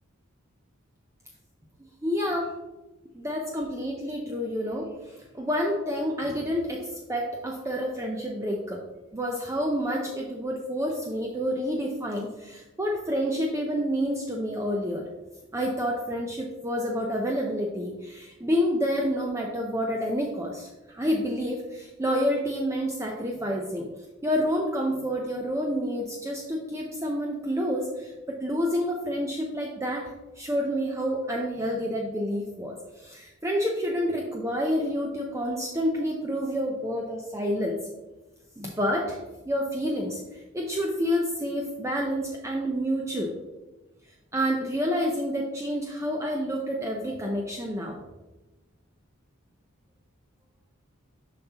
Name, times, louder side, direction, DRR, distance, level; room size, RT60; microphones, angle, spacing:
voice 1, 2.0-2.6 3.1-8.8 9.1-15.0 15.5-23.9 24.2-30.1 30.4-37.8 38.6-39.2 39.5-43.3 44.3-48.0, equal, 15° right, 0 dB, 0.5 m, -29 dB
7.0 x 5.6 x 2.9 m, 1.1 s
head